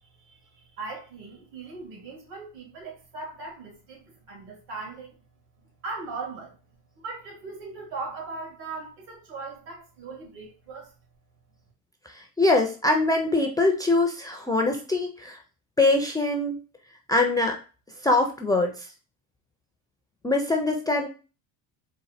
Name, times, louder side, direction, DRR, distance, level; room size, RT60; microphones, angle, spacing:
voice 1, 0.0-5.1 5.8-6.6 6.9-10.9, right 3 dB, 70° right, 2.3 m, -39 dB
voice 2, 12.1-15.4 15.8-16.6 17.1-17.6 18.0-18.9 20.2-21.1, left 2 dB, 10° left, 0.4 m, -23 dB
4.1 x 2.5 x 4.1 m
cardioid pair, 130°, 41 cm